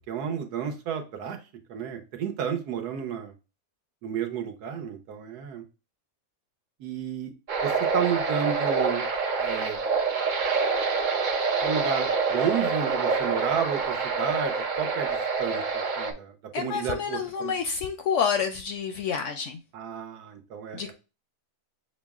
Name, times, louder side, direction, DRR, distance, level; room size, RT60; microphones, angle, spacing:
voice 1, 0.1-1.4 1.7-3.3 4.0-5.6 6.8-7.3 7.6-9.0 9.4-9.8 11.6-15.6 16.0-17.5 19.7-20.9, right 8 dB, 85° right, 1.3 m, -31 dB
sound 1, 7.5-16.1, right 4 dB, 60° right, 0.5 m, -26 dB
voice 2, 16.5-19.6 20.7-20.9, left 6 dB, 70° left, 0.7 m, -28 dB
6.2 x 2.1 x 3.5 m
omnidirectional pair, 1.7 m